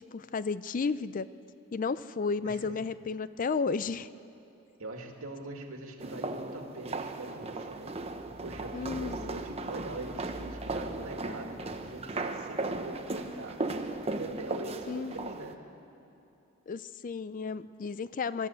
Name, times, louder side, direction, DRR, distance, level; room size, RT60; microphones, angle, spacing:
voice 1, 0.1-1.3 1.7-4.1 8.7-9.4 14.9-15.3 16.7-18.5, left 4 dB, 40° left, 15 dB, 0.4 m, -33 dB
voice 2, 2.4-2.8 4.8-13.6 14.1-15.6, right 2 dB, 75° right, 3 dB, 2.2 m, -43 dB
sound 1, 6.0-15.5, right 2 dB, 30° right, 0.9 m, -36 dB
24.0 x 13.5 x 8.4 m, 2.8 s
head